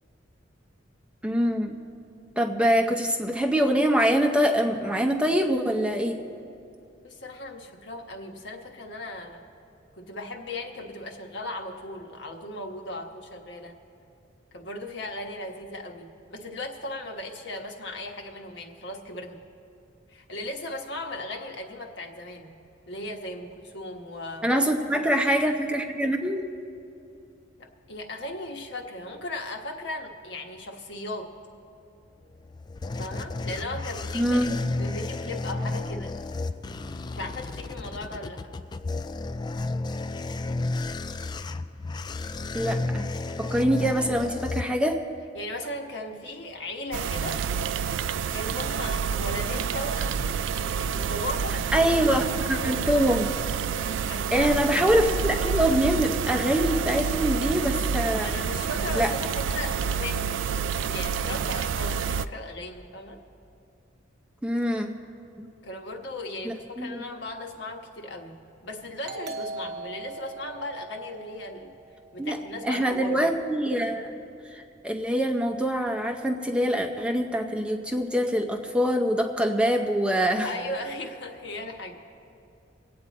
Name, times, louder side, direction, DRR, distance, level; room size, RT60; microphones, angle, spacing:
voice 1, 1.2-1.8 2.4-6.2 24.4-26.4 34.1-34.5 42.5-43.1 43.4-45.0 51.7-53.3 54.3-58.3 59.0-59.1 64.4-64.9 65.4-65.5 66.4-67.0 72.2-72.4 72.6-74.1 74.5-80.5, equal, 5° right, 3 dB, 0.6 m, -24 dB
voice 2, 7.0-9.4 10.0-13.7 14.5-19.4 20.1-22.5 22.9-24.9 27.6-31.3 33.0-36.1 37.0-38.4 44.0-44.2 45.3-47.4 48.3-50.2 50.8-53.2 54.0-54.5 58.2-60.4 60.7-63.2 65.6-68.3 68.6-71.8 72.1-73.2 80.4-81.9, left 1 dB, 65° left, 2 dB, 1.3 m, -37 dB
sound 1, 32.2-45.2, left 2 dB, 20° left, 0.3 m, -32 dB
sound 2, 46.9-62.3, right 6 dB, 80° right, 0.4 m, -28 dB
Doorbell, 69.0-72.4, right 3 dB, 60° right, 0.8 m, -40 dB
24.5 x 8.7 x 4.2 m, 2.6 s
head